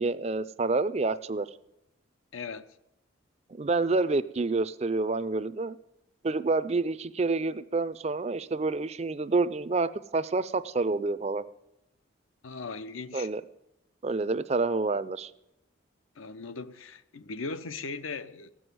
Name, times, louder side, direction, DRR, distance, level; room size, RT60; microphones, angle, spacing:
voice 1, 0.0-1.5 3.5-5.8 6.2-11.4 13.1-13.4 14.0-15.3, right 3 dB, 30° right, 0.4 m, -28 dB
voice 2, 2.3-2.7 12.4-13.3 16.2-18.5, left 4 dB, 80° left, 0.7 m, -38 dB
16.0 x 6.3 x 9.2 m
head